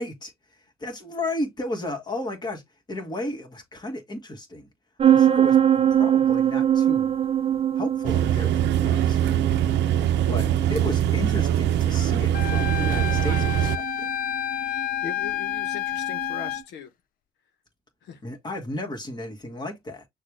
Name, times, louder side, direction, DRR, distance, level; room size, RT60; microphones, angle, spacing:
voice 1, 0.0-2.6 2.9-4.7 5.0-5.6 5.9-7.1 7.7-9.2 10.3-14.1 18.2-20.1, left 1 dB, 25° left, 1.7 m, -33 dB
sound 1, 5.0-16.5, right 10 dB, 30° right, 0.7 m, -24 dB
sound 2, 8.0-13.8, right 11 dB, 70° right, 0.7 m, -23 dB
Wind instrument woodwind instrument, 12.3-16.6, left 11 dB, 50° left, 0.4 m, -29 dB
voice 2, 15.0-16.9 18.0-18.2, left 7 dB, 70° left, 1.0 m, -39 dB
6.4 x 2.4 x 3.3 m
cardioid pair, 125°, 19 cm